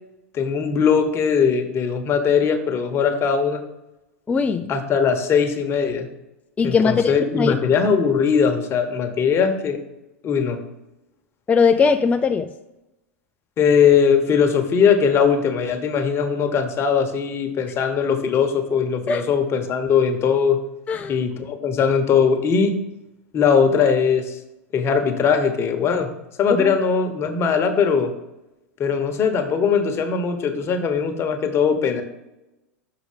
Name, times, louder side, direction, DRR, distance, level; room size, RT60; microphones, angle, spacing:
voice 1, 0.3-3.6 4.7-6.1 6.6-9.8 10.2-10.6 13.6-20.6 21.1-22.7 23.3-24.4 24.7-26.1 26.4-28.1 28.8-32.0, left 6 dB, 35° left, 6 dB, 1.1 m, -20 dB
voice 2, 4.3-4.7 6.6-7.6 11.5-12.5 19.1-19.2 20.9-21.2 26.6-26.7, left 5 dB, 20° left, 7 dB, 0.4 m, -20 dB
6.7 x 4.7 x 5.1 m, 0.95 s
hypercardioid pair, 90°, 8 cm